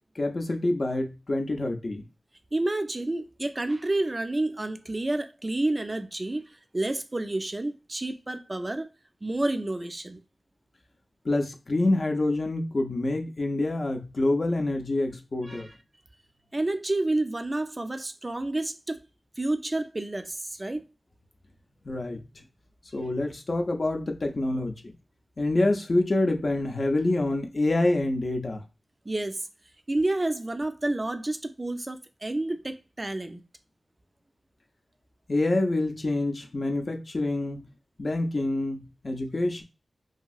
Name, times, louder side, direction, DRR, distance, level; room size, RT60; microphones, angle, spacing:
voice 1, 0.2-2.0 11.2-15.7 21.8-22.2 22.9-24.8 25.4-28.6 35.3-37.7 38.0-39.6, left 2 dB, 50° left, 0.5 m, -26 dB
voice 2, 2.5-8.9 9.2-10.2 15.5-15.7 16.5-19.0 19.4-20.8 29.1-29.4 29.9-33.4, right 2 dB, 30° right, 0.4 m, -29 dB
2.8 x 2.6 x 2.3 m
wide cardioid pair, 105°, 0 cm